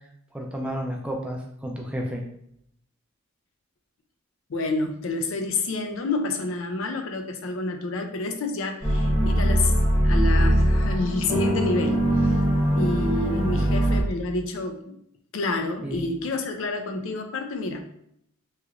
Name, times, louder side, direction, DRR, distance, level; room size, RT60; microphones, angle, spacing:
voice 1, 0.3-2.2 13.5-13.7 15.8-16.0, equal, 5° right, 0 dB, 0.4 m, -31 dB
voice 2, 4.5-9.8 10.0-12.4 12.8-15.0 15.3-17.9, left 3 dB, 70° left, 5 dB, 0.4 m, -29 dB
sound 1, 8.8-14.0, equal, 25° left, 1.0 m, -21 dB
3.1 x 2.9 x 2.4 m, 0.73 s
head